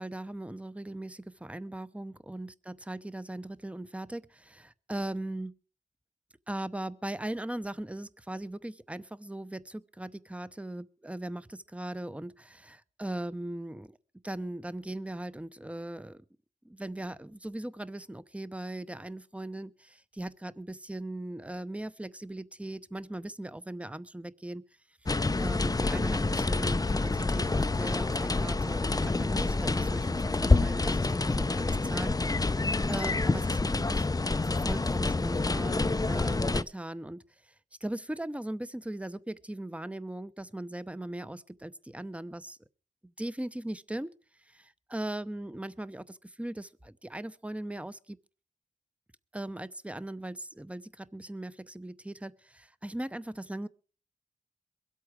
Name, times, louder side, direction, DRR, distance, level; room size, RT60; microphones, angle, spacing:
voice 1, 0.0-5.5 6.5-14.0 14.2-16.2 16.6-24.6 25.4-32.1 32.9-34.1 34.6-37.5 37.8-42.6 43.2-44.1 44.5-48.2 49.3-53.7, right 1 dB, 10° right, 0.8 m, -39 dB
sound 1, 25.1-36.6, left 3 dB, 25° left, 0.6 m, -27 dB
23.0 x 8.4 x 4.7 m
cardioid pair, 55°, 16 cm